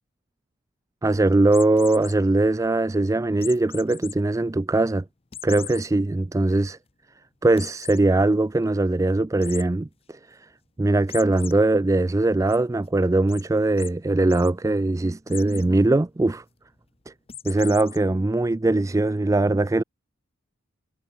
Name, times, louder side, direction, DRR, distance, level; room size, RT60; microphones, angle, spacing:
voice 1, 1.0-5.0 5.4-6.8 7.4-10.5 10.8-16.4 17.1-17.2 17.4-19.8, right 2 dB, 15° right, 0.3 m, -21 dB
sound 1, 1.5-2.1 3.4-4.1 4.6-4.7 5.3-5.8 6.3-6.4 6.7-6.8 7.6-8.0 9.4-9.6 11.1-11.5 12.0-12.6 13.3-13.4 13.8-13.9 14.2-14.5 15.3-15.7 17.3-18.0, left 10 dB, 30° left, 0.7 m, -38 dB
head